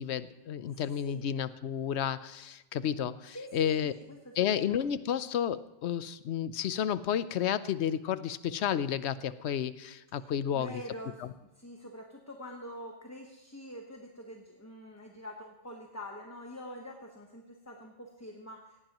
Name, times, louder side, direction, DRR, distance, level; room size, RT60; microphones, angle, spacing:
voice 1, 0.0-3.9 4.4-10.8 11.2-11.3, left 9 dB, 75° left, 15 dB, 0.9 m, -31 dB
voice 2, 0.7-1.2 3.3-4.7 10.2-11.2 11.6-18.9, equal, 15° left, 2 dB, 1.0 m, -46 dB
18.0 x 15.5 x 3.0 m, 0.97 s
omnidirectional pair, 1.2 m